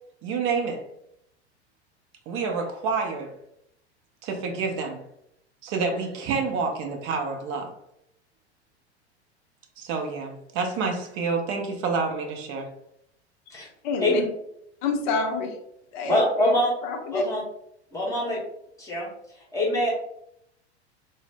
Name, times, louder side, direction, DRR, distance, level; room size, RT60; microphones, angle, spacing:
voice 1, 0.2-0.8 2.3-3.3 4.2-5.0 5.6-7.7 9.8-12.7, right 4 dB, 35° right, 2 dB, 0.5 m, -28 dB
voice 2, 13.5-14.2 14.8-15.5 15.9-16.5 16.8-17.2, left 4 dB, 45° left, 4 dB, 0.6 m, -28 dB
voice 3, 16.1-16.7 17.1-17.4 17.9-18.4 18.8-19.1 19.5-19.9, left 1 dB, 10° left, -5 dB, 0.8 m, -24 dB
2.0 x 2.0 x 3.3 m, 0.76 s
figure-of-eight pair, 85°, 34 cm